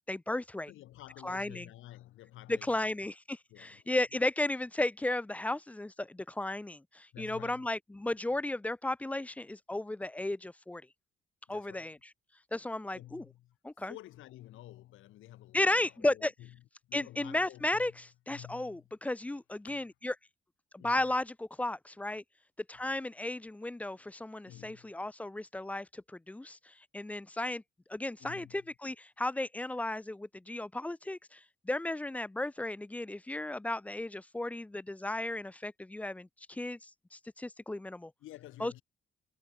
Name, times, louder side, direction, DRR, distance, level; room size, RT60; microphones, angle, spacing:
voice 1, 0.1-0.7 1.2-1.7 2.5-10.8 11.5-12.0 12.5-13.2 13.6-13.9 15.5-16.3 16.9-20.1 20.7-22.2 22.7-27.6 27.9-38.1 38.6-38.7, left 1 dB, 5° left, 0.3 m, -34 dB
voice 2, 0.7-3.1 3.5-4.2 7.1-7.7 11.5-11.9 12.9-13.6 13.9-16.6 16.8-18.0 18.3-18.9 19.7-19.9 20.8-21.1 22.7-22.8 24.4-24.9 28.2-28.7 38.2-38.8, left 15 dB, 85° left, 2.8 m, -51 dB
cardioid pair, 90°, 20 cm